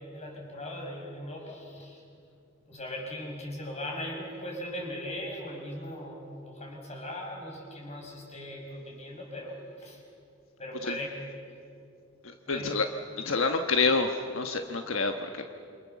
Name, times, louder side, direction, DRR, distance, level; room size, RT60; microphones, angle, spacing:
voice 1, 0.1-2.0 2.7-10.0 10.6-11.2 12.5-12.7, left 1 dB, 35° left, 0 dB, 6.1 m, -39 dB
voice 2, 12.2-12.9 13.2-15.4, left 4 dB, 80° left, 5 dB, 1.3 m, -28 dB
28.0 x 26.0 x 7.0 m, 2.5 s
head